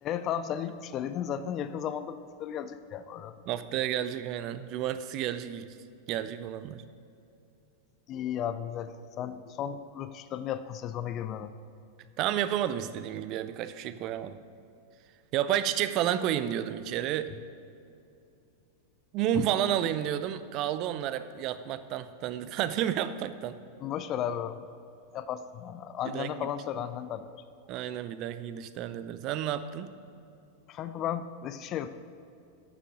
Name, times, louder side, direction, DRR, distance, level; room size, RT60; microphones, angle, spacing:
voice 1, 0.0-3.4 8.1-11.5 19.3-19.4 23.8-24.6 25.1-27.4 30.7-31.9, left 9 dB, 35° left, 12 dB, 0.4 m, -34 dB
voice 2, 3.5-5.8 6.1-6.8 12.2-14.4 15.3-17.3 19.1-23.6 26.1-26.5 27.7-29.9, right 11 dB, 40° right, 13 dB, 0.5 m, -31 dB
9.1 x 7.5 x 5.0 m, 2.6 s
figure-of-eight pair, 90°, 0 cm